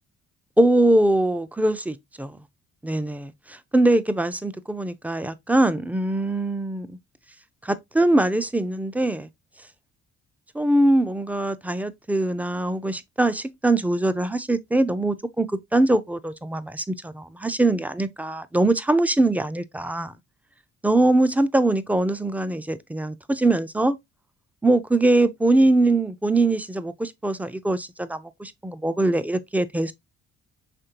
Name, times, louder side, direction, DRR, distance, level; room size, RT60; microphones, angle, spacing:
voice 1, 0.6-2.4 2.8-7.0 7.6-9.3 10.5-20.2 20.8-24.0 24.6-29.9, right 2 dB, 5° right, 0.5 m, -22 dB
5.1 x 3.2 x 2.8 m
cardioid pair, 90°, 30 cm